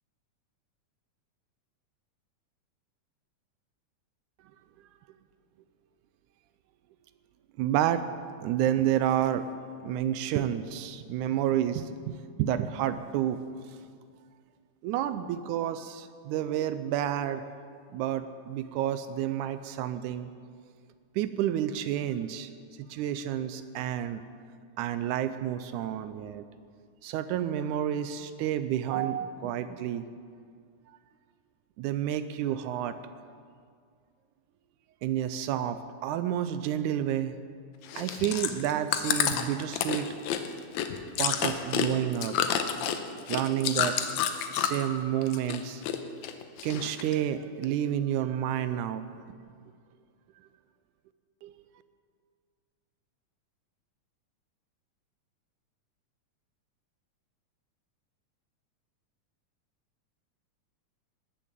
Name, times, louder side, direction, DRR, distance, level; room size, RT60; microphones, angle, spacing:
voice 1, 7.6-8.0 8.4-9.5 9.8-13.4 14.8-17.4 17.9-20.3 21.2-22.5 22.8-24.2 24.8-26.4 27.0-30.1 31.8-33.0 35.0-37.4 38.0-40.1 41.2-42.4 43.3-45.8 46.6-49.1 51.4-51.5, right 11 dB, 80° right, 12 dB, 2.0 m, -30 dB
Chewing mastication, 37.8-44.9 45.2-46.0 46.2-47.1 47.6-47.7, left 9 dB, 75° left, 2.0 m, -29 dB
19.5 x 7.2 x 7.4 m, 2.1 s
omnidirectional pair, 3.6 m